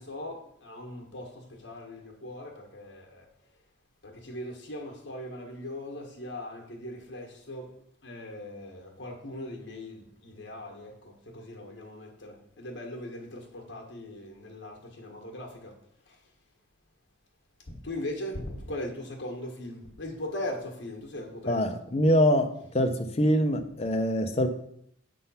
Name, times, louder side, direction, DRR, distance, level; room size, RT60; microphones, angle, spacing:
voice 1, 0.0-3.3 4.0-7.7 8.0-15.8 16.1-16.2 17.7-21.7, left 1 dB, 65° left, 1.5 m, -39 dB
voice 2, 21.5-22.5 22.7-24.5, equal, 30° left, 0.6 m, -24 dB
6.8 x 3.8 x 5.6 m
head